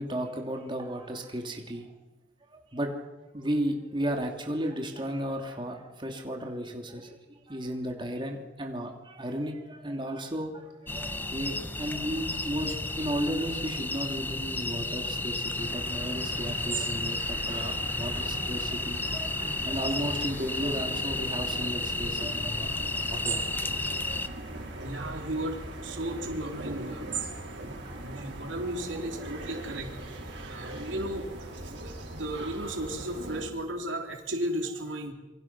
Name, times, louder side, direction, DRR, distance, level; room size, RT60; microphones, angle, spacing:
voice 1, 0.0-1.9 2.5-3.1 3.3-24.4 25.0-25.3 27.2-27.4 27.8-28.5 30.5-30.8 32.1-32.2, equal, 25° right, 2 dB, 2.8 m, -35 dB
sound 1, 10.9-24.3, left 2 dB, 10° left, 0.9 m, -32 dB
sound 2, 15.6-33.4, right 3 dB, 70° right, 5.7 m, -40 dB
voice 2, 24.8-29.9 30.2-35.1, right 1 dB, 85° right, 3 dB, 3.8 m, -35 dB
27.0 x 24.0 x 6.1 m, 1.1 s
head